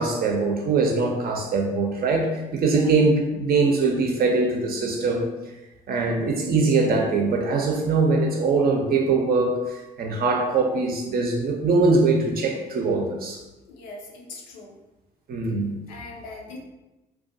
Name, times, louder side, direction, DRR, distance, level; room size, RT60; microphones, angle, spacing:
voice 1, 0.0-5.3 5.9-13.4 15.3-15.7, right 3 dB, 45° right, 1 dB, 0.6 m, -22 dB
voice 2, 2.6-3.0 13.7-14.8 15.9-16.6, left 3 dB, 80° left, -1 dB, 0.5 m, -41 dB
2.3 x 2.3 x 2.6 m, 1.0 s
hypercardioid pair, 50°, 21 cm